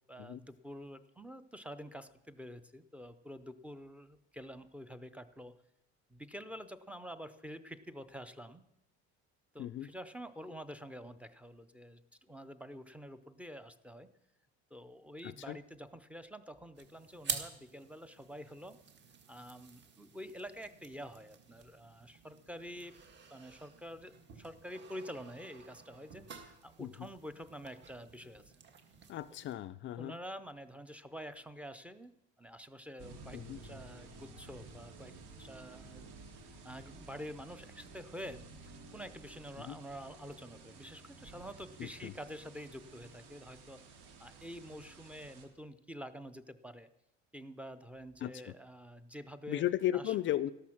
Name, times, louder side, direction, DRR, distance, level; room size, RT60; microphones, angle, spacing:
voice 1, 0.1-5.5 6.1-8.6 9.5-14.1 14.7-18.8 19.3-23.0 23.3-28.4 30.0-32.1 32.4-35.1 35.4-36.1 36.6-43.8 44.2-46.9 47.3-50.2, equal, 5° right, 11 dB, 0.6 m, -48 dB
voice 2, 15.2-15.6 26.8-26.9 29.1-30.2 33.3-33.6 39.6-39.8 41.8-42.1 48.2-48.5 49.5-50.5, left 13 dB, 40° left, 17 dB, 0.4 m, -35 dB
sound 1, 16.8-29.5, right 6 dB, 40° right, 1.7 m, -48 dB
sound 2, 33.0-45.4, right 3 dB, 85° right, 3.4 m, -53 dB
13.0 x 12.5 x 5.9 m, 0.84 s
cardioid pair, 145°, 29 cm